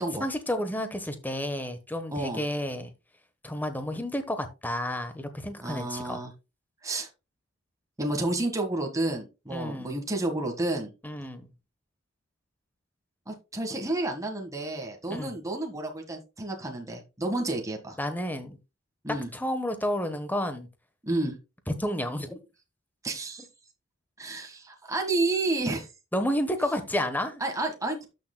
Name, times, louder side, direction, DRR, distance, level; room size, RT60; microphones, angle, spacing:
voice 1, 0.2-2.9 3.4-6.2 9.5-10.0 11.0-11.5 15.1-15.3 18.0-18.6 19.3-20.7 21.7-22.4 26.1-27.4, left 1 dB, 10° left, 1.1 m, -31 dB
voice 2, 2.1-2.4 5.6-6.3 6.8-7.1 8.0-10.9 13.3-18.0 19.0-19.3 21.0-21.4 23.0-23.4 24.2-25.9 27.4-28.1, right 2 dB, 15° right, 1.6 m, -30 dB
12.0 x 6.6 x 2.2 m
head